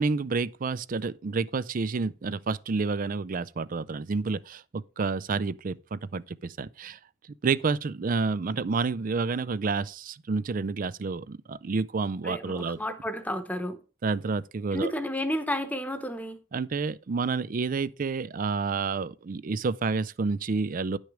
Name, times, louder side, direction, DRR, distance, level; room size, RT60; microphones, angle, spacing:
voice 1, 0.0-7.0 7.4-12.8 14.0-14.9 16.5-21.0, right 4 dB, 45° right, 0.4 m, -29 dB
voice 2, 12.2-13.8 14.7-16.4, equal, 10° left, 1.0 m, -31 dB
10.5 x 6.3 x 4.9 m
head